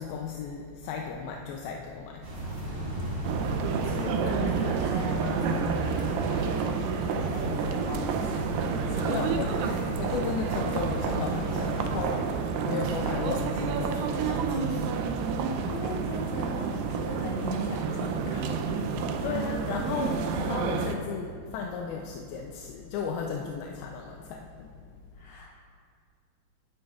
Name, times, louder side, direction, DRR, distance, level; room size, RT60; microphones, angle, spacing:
voice 1, 0.0-2.4 9.0-15.0 19.2-25.0, left 5 dB, 85° left, 1 dB, 2.5 m, -35 dB
sound 1, 2.2-12.0, equal, 35° right, 2.4 m, -37 dB
sound 2, 3.2-21.0, right 5 dB, 80° right, 2.2 m, -29 dB
voice 2, 3.8-8.6 8.9-9.9 15.7-18.9 25.1-25.5, equal, 65° left, -5 dB, 3.7 m, -38 dB
18.0 x 10.5 x 2.4 m, 2.1 s
omnidirectional pair, 4.3 m